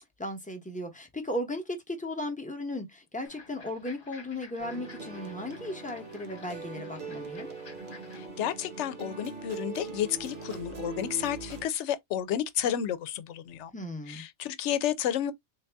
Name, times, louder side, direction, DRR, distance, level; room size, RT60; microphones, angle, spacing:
voice 1, 0.2-7.5 13.7-14.2, left 1 dB, 10° left, 0.7 m, -36 dB
sound 1, 3.3-8.3, left 4 dB, 50° left, 1.1 m, -52 dB
sound 2, 4.6-11.7, right 4 dB, 50° right, 1.1 m, -41 dB
voice 2, 8.1-13.7 14.1-15.3, left 10 dB, 85° left, 0.9 m, -31 dB
3.7 x 2.6 x 3.3 m
omnidirectional pair, 1.2 m